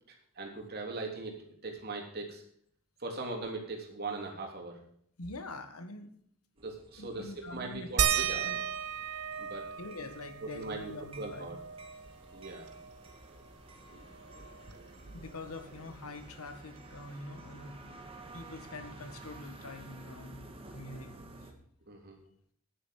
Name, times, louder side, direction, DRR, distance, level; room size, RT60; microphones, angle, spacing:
voice 1, 0.1-2.4 3.0-4.8 6.6-8.5 9.4-9.7 10.4-10.9 11.2-11.6 12.3-12.7 13.3-13.4 13.9-14.1 21.9-22.2, right 3 dB, 45° right, 2 dB, 3.3 m, -40 dB
voice 2, 5.2-6.2 7.0-8.6 9.8-11.6 14.3-14.5 15.1-18.0 18.3-21.5, left 2 dB, 80° left, 9 dB, 1.6 m, -45 dB
sound 1, 6.6-21.5, right 2 dB, 25° right, 1.9 m, -52 dB
sound 2, 8.0-13.1 13.5-13.6 13.9-15.7 16.9-17.0 17.7-17.8, right 8 dB, 85° right, 1.0 m, -35 dB
10.5 x 10.0 x 6.5 m, 0.66 s
head